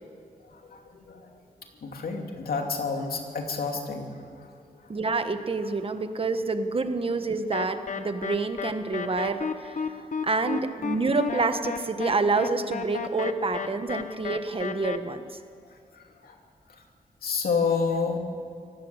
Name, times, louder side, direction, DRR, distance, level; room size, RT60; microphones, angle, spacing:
voice 1, 0.4-1.4 1.8-5.0 5.9-6.0 9.9-10.1 15.6-16.4 16.7-16.8 17.2-18.2, left 5 dB, 90° left, 2 dB, 2.9 m, -30 dB
voice 2, 4.9-9.7 10.2-15.4, right 3 dB, 40° right, 8 dB, 1.4 m, -27 dB
sound 1, 7.5-15.0, left 6 dB, 60° left, 1.1 m, -33 dB
25.5 x 18.5 x 8.2 m, 2.2 s
wide cardioid pair, 125°, 15 cm